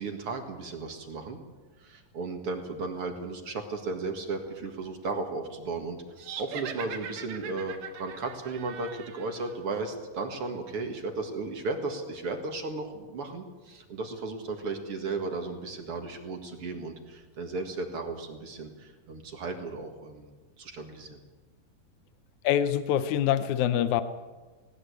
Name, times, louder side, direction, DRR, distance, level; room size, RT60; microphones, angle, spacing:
voice 1, 0.0-1.4 1.8-21.2, right 3 dB, 45° right, 5 dB, 2.4 m, -35 dB
sound 1, 6.2-9.6, right 8 dB, 70° right, 3.0 m, -41 dB
voice 2, 22.4-24.0, left 10 dB, 70° left, 11 dB, 2.0 m, -25 dB
19.5 x 18.0 x 8.3 m, 1.3 s
omnidirectional pair, 4.0 m